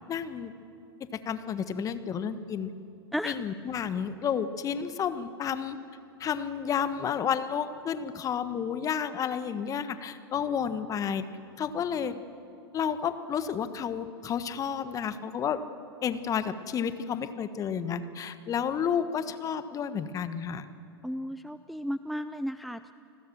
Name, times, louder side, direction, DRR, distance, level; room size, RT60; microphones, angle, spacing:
voice 1, 0.1-0.5 1.1-2.7 3.2-5.8 6.2-11.3 11.6-12.2 12.7-15.6 16.0-20.7, left 7 dB, 25° left, 12 dB, 1.4 m, -31 dB
voice 2, 21.0-22.9, equal, ahead, 12 dB, 0.5 m, -34 dB
29.5 x 20.0 x 7.6 m, 2.7 s
figure-of-eight pair, 105°, 14 cm